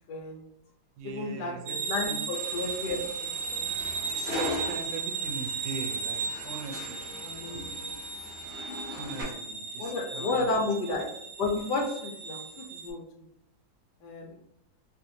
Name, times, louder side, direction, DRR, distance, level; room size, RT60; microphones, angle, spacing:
voice 1, 0.1-0.5 1.0-3.0 3.5-3.8 7.2-7.6 9.8-11.1 11.4-13.2 14.0-14.4, left 3 dB, 70° left, 1 dB, 1.1 m, -32 dB
voice 2, 1.0-2.2 4.1-7.0 7.5-8.1 9.0-10.5, right 5 dB, 85° right, 4 dB, 1.3 m, -40 dB
sound 1, 1.7-12.9, right 5 dB, 70° right, 0.8 m, -36 dB
sound 2, 2.3-9.2, left 1 dB, 25° left, 1.5 m, -40 dB
3.1 x 2.6 x 2.6 m, 0.78 s
omnidirectional pair, 2.0 m